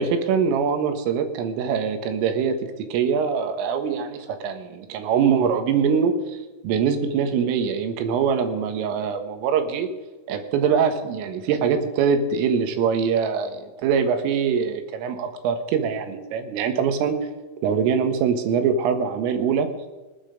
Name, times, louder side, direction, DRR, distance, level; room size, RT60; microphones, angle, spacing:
voice 1, 0.0-9.9 10.3-17.2 17.6-19.7, right 6 dB, 90° right, 7 dB, 4.1 m, -23 dB
26.0 x 8.9 x 5.2 m, 1.2 s
omnidirectional pair, 5.7 m